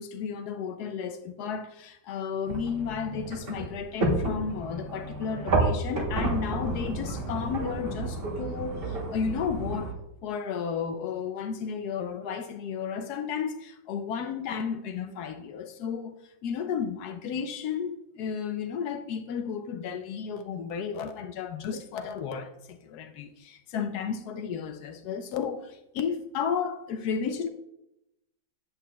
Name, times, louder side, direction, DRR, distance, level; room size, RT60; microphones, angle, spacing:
voice 1, 0.0-9.9 10.2-27.5, left 6 dB, 70° left, 0.9 m, -33 dB
sound 1, 2.5-9.9, right 2 dB, 35° right, 1.0 m, -31 dB
8.5 x 8.3 x 2.2 m
omnidirectional pair, 2.0 m